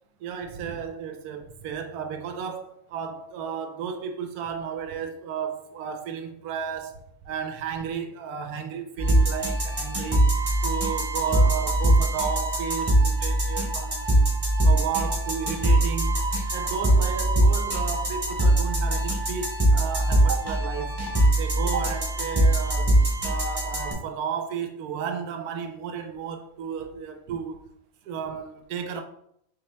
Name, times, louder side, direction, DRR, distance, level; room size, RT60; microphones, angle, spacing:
voice 1, 0.2-7.0 7.2-10.2 10.6-14.1 14.6-16.2 16.5-21.1 21.4-27.7 28.1-29.0, right 7 dB, 85° right, 1.1 m, -33 dB
sound 1, 9.0-23.9, right 1 dB, 20° right, 0.8 m, -22 dB
4.1 x 2.9 x 3.2 m
omnidirectional pair, 1.6 m